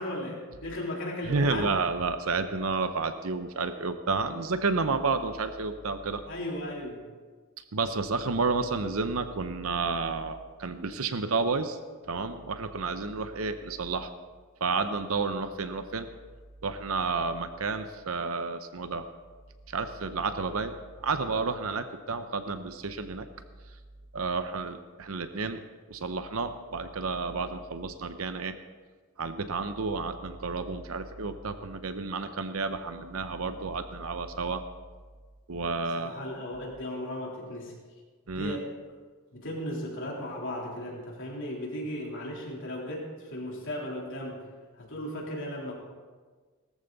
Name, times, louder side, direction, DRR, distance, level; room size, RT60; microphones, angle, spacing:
voice 1, 0.0-1.8 6.3-7.0 36.0-37.7 38.4-38.6 39.3-44.4 44.8-45.7, left 1 dB, 60° left, -2 dB, 3.5 m, -36 dB
voice 2, 1.2-6.2 7.7-11.8 12.1-14.1 14.6-16.1 16.6-19.0 19.7-20.7 21.0-23.3 24.1-25.6 25.9-28.6 29.2-34.6 35.5-36.1 38.3-38.6, right 4 dB, 65° right, 9 dB, 0.8 m, -31 dB
18.0 x 13.5 x 4.0 m, 1.4 s
head